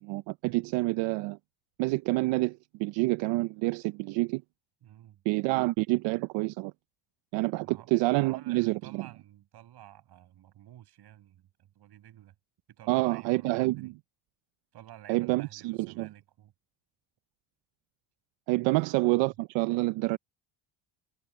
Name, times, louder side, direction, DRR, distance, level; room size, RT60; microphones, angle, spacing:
voice 1, 0.0-1.4 1.8-4.4 5.3-6.7 7.3-9.1 12.9-13.9 15.1-16.1 18.5-20.2, right 21 dB, 90° right, 0.7 m, -28 dB
voice 2, 4.8-5.2 7.6-7.9 8.2-12.3 12.7-13.9 14.7-16.5 18.6-18.8 19.0-19.3, right 12 dB, 60° right, 7.0 m, -52 dB
cardioid pair, 115°, 44 cm